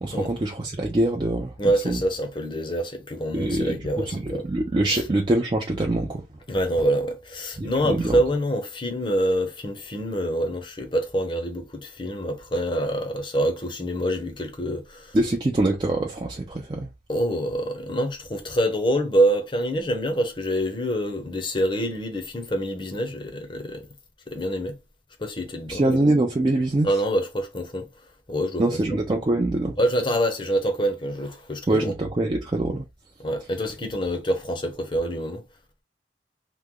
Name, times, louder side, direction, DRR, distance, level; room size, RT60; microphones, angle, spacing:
voice 1, 0.0-1.5 1.8-2.0 3.3-6.2 7.6-8.2 15.1-16.9 25.7-26.9 28.6-29.7 31.7-32.8, right 2 dB, 25° right, 0.4 m, -24 dB
voice 2, 1.6-4.5 4.9-5.0 6.5-15.2 17.1-23.9 24.3-24.8 25.2-26.0 26.8-27.9 28.3-29.0 29.8-31.9 33.2-35.4, right 1 dB, 30° left, 0.7 m, -26 dB
3.0 x 2.1 x 3.6 m
head